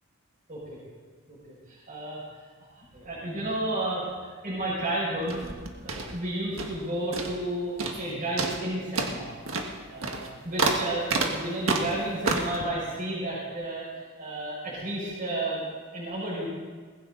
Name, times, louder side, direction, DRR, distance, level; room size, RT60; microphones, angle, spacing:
voice 1, 1.7-2.2 2.8-5.4 5.8-9.3 9.9-15.6 15.9-16.5, right 1 dB, 40° right, -8 dB, 6.3 m, -32 dB
sound 1, 5.2-6.9 7.1-7.5 7.8-8.1 8.4-12.6, right 3 dB, 70° right, 1.7 m, -30 dB
20.0 x 16.5 x 4.0 m, 1.5 s
head